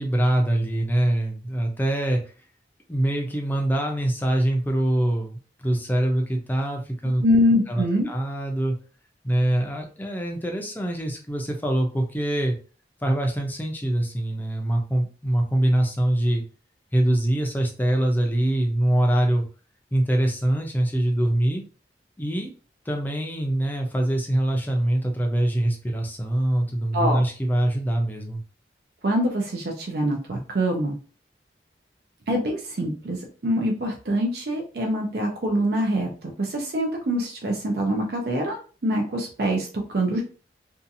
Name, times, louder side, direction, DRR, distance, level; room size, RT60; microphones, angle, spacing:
voice 1, 0.0-2.2 2.9-7.2 7.7-8.8 9.2-12.6 13.0-16.4 16.9-19.4 19.9-21.6 22.2-22.5 22.9-28.4, right 1 dB, 10° left, 1 dB, 0.5 m, -24 dB
voice 2, 7.2-8.1 26.9-27.2 29.0-31.0 32.3-40.2, equal, 60° right, 1 dB, 0.5 m, -24 dB
2.7 x 2.3 x 2.6 m, 0.38 s
head